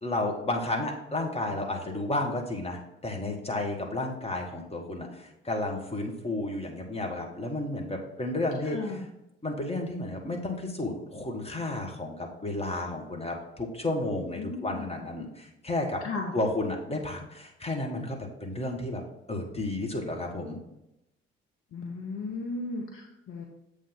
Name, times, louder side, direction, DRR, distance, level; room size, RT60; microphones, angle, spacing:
voice 1, 0.0-9.0 9.4-16.0 16.3-19.0 19.3-20.6, left 2 dB, 20° left, 1 dB, 1.4 m, -32 dB
voice 2, 8.6-9.0 14.4-14.9 16.0-16.3 21.7-23.4, left 3 dB, 45° left, 1 dB, 0.9 m, -35 dB
7.4 x 3.4 x 5.3 m, 0.87 s
figure-of-eight pair, 45°, 30 cm